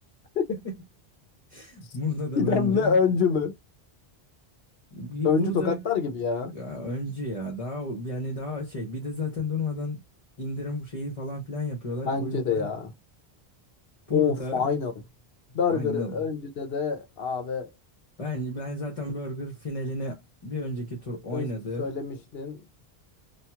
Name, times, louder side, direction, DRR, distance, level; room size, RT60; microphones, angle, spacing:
voice 1, 1.5-3.0 4.9-5.8 6.5-10.0 10.4-12.7 14.1-14.7 15.7-16.3 18.2-21.9, left 1 dB, 35° left, 1.0 m, -32 dB
voice 2, 2.4-3.5 5.2-6.5 12.0-12.9 14.1-14.9 15.5-17.7 21.3-21.5 21.8-22.6, left 5 dB, 70° left, 1.0 m, -26 dB
2.9 x 2.5 x 2.3 m
omnidirectional pair, 1.1 m